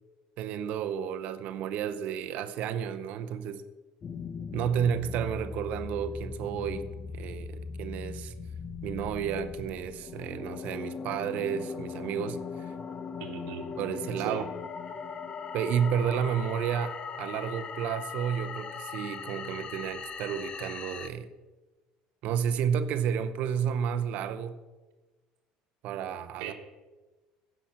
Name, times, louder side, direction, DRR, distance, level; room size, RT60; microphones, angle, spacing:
voice 1, 0.4-3.6 4.5-6.8 7.1-8.3 8.8-12.7 13.8-14.5 15.5-21.3 22.2-24.6 25.8-26.5, right 8 dB, 60° right, 11 dB, 0.7 m, -31 dB
sound 1, 4.0-21.1, left 5 dB, 35° left, 0.7 m, -39 dB
voice 2, 13.2-13.7 14.2-14.4 26.4-26.5, right 8 dB, 75° right, -2 dB, 1.2 m, -37 dB
10.0 x 5.9 x 7.3 m, 1.2 s
supercardioid pair, 100°, 3 cm